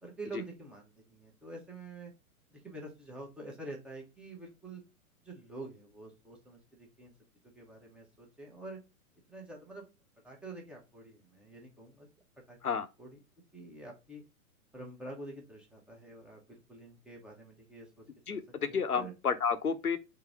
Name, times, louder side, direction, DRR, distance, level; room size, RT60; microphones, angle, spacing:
voice 1, 0.0-2.1 2.5-4.8 5.2-7.1 7.5-8.8 9.3-9.8 10.2-12.1 12.5-13.1 13.5-14.2 14.7-16.4 16.7-18.0 18.3-18.4 18.7-19.1, right 2 dB, ahead, 0.7 m, -47 dB
voice 2, 18.3-20.0, left 6 dB, 80° left, 0.7 m, -31 dB
3.8 x 2.7 x 4.7 m
figure-of-eight pair, 105°, 44 cm